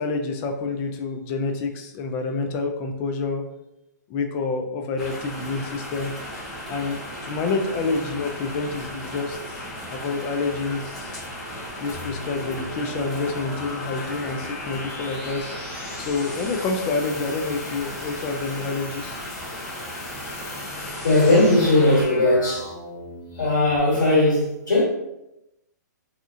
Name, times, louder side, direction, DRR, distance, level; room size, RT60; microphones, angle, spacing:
voice 1, 0.0-3.4 4.1-6.1 6.7-9.6 9.9-11.2 11.8-15.5 16.0-19.2, left 3 dB, 25° left, 4 dB, 0.3 m, -28 dB
sound 1, 5.0-22.0, equal, 5° left, 0.8 m, -36 dB
sound 2, 11.9-23.8, left 2 dB, 50° left, 0.9 m, -39 dB
voice 2, 21.0-22.7 23.3-24.8, left 2 dB, 85° left, -7 dB, 1.3 m, -18 dB
2.7 x 2.5 x 2.4 m, 0.89 s
hypercardioid pair, 145°, 10 cm